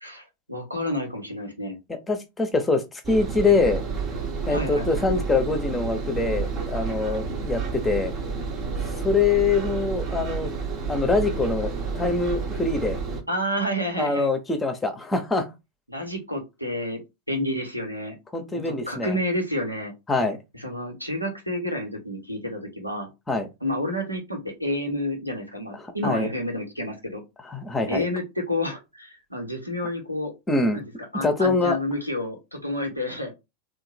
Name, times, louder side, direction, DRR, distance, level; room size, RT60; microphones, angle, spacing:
voice 1, 0.0-1.8 4.5-5.0 13.3-14.3 15.9-17.0 17.3-18.1 18.6-19.9 20.5-23.1 23.6-27.2 27.9-30.3 30.7-30.8 31.1-33.3, left 1 dB, 90° right, 1.3 m, -29 dB
voice 2, 1.9-3.8 4.5-8.1 9.0-10.5 10.9-13.0 14.0-15.5 18.3-19.2 20.1-20.4 23.3-23.5 25.8-26.3 27.4-28.0 30.5-30.8 31.1-31.8, left 3 dB, 10° left, 0.8 m, -24 dB
Engine, 3.0-13.2, right 5 dB, 35° right, 0.9 m, -30 dB
3.7 x 2.5 x 4.2 m
figure-of-eight pair, 90°, 0 cm